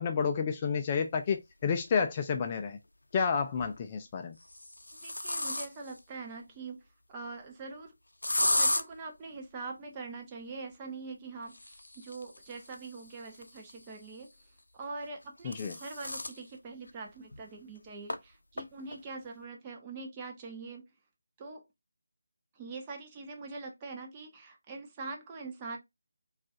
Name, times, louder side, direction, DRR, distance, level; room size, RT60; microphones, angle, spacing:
voice 1, 0.0-2.8 3.1-4.4 15.4-15.8, left 6 dB, 25° left, 0.4 m, -30 dB
sound 1, 1.8-1.9 3.4-3.8 4.4-6.0 8.2-8.8 11.4-14.1 15.1-16.4 16.9-17.0 17.3-17.4 18.1-18.2 18.6-19.0, left 1 dB, 85° left, 0.5 m, -34 dB
voice 2, 5.0-6.8 7.1-7.9 8.5-14.3 14.7-20.8 21.4-21.6 22.6-25.8, right 3 dB, 20° right, 0.6 m, -43 dB
3.7 x 2.4 x 2.6 m
figure-of-eight pair, 160°, 0 cm